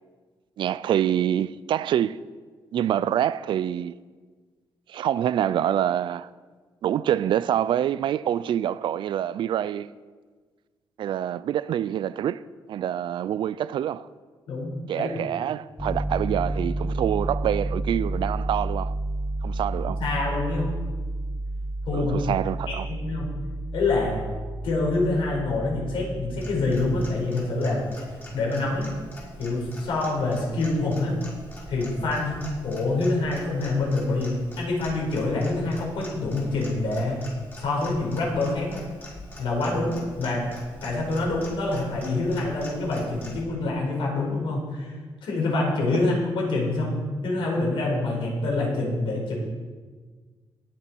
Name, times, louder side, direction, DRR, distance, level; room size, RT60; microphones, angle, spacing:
voice 1, 0.6-2.2 2.7-3.9 4.9-6.3 6.8-9.9 11.0-14.1 14.9-19.0 19.4-20.0 21.9-22.9, right 10 dB, 70° right, 0.4 m, -26 dB
voice 2, 14.5-15.1 19.8-20.7 21.9-22.2 22.7-23.3 23.7-24.2 24.6-27.8 28.3-28.9 29.4-31.2 31.7-37.3 37.6-38.8 39.4-40.5 40.8-44.9 45.2-49.3, left 2 dB, 80° left, 4.6 m, -26 dB
Piano, 15.8-27.1, right 2 dB, 5° left, 0.9 m, -31 dB
Clock, 26.3-43.4, left 1 dB, 25° left, 4.3 m, -43 dB
20.5 x 7.0 x 4.6 m
cardioid pair, 115°, 9 cm